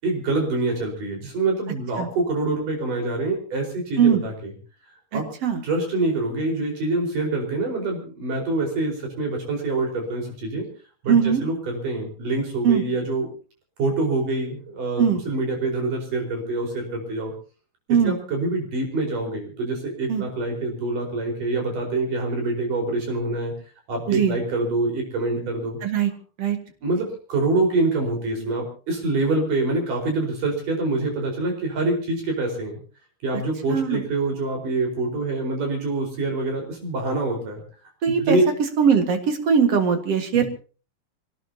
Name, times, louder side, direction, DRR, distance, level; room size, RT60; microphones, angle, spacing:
voice 1, 0.0-4.3 5.1-5.3 5.6-10.7 11.0-11.2 11.4-13.3 13.8-17.3 18.0-23.5 23.9-25.8 26.8-32.8 33.2-37.6 38.2-38.4 40.3-40.4, right 2 dB, 70° right, 1 dB, 6.3 m, -25 dB
voice 2, 5.1-5.6 11.1-11.4 12.6-12.8 15.0-15.2 17.9-18.2 20.1-20.2 24.1-24.4 25.8-26.1 26.4-26.6 33.7-34.0 38.0-38.4 38.8-40.5, right 7 dB, 50° right, 6 dB, 2.6 m, -20 dB
26.0 x 17.5 x 2.9 m, 0.37 s
omnidirectional pair, 3.9 m